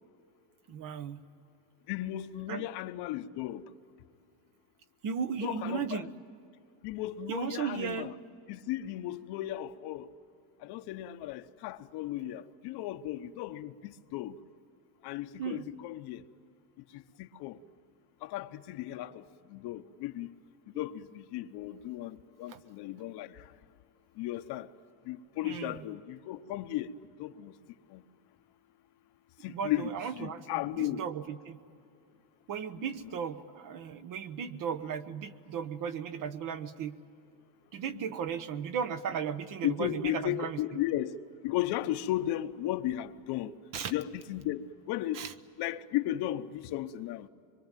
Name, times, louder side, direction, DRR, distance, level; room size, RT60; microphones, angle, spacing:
voice 1, 0.7-1.2 2.5-2.7 5.0-6.1 7.3-8.1 15.4-15.7 22.5-22.6 25.4-25.8 29.5-31.6 32.5-37.0 37.7-40.6 43.7-43.9 45.1-45.3, right 7 dB, 45° right, 1.1 m, -36 dB
voice 2, 1.9-3.7 5.4-6.0 6.8-8.1 8.5-10.1 10.6-14.4 15.0-16.2 16.9-17.6 18.2-20.4 20.7-23.5 24.2-24.7 25.0-26.9 27.2-27.6 27.9-28.0 29.4-31.0 32.8-32.9 37.8-38.1 39.6-41.2 41.4-43.6 43.9-45.2 45.6-47.3, left 13 dB, 60° left, 1.0 m, -35 dB
24.5 x 23.0 x 9.1 m
cardioid pair, 145°, 46 cm